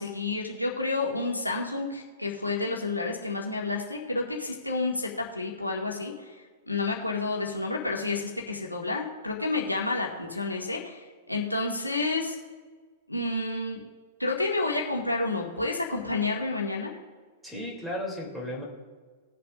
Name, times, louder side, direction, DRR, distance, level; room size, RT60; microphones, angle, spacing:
voice 1, 0.0-12.4 13.1-13.8 14.2-16.9, left 3 dB, 90° left, -2 dB, 1.9 m, -30 dB
voice 2, 17.4-18.6, left 1 dB, 5° right, -3 dB, 3.2 m, -34 dB
20.5 x 7.7 x 2.6 m, 1.5 s
figure-of-eight pair, 100°, 0 cm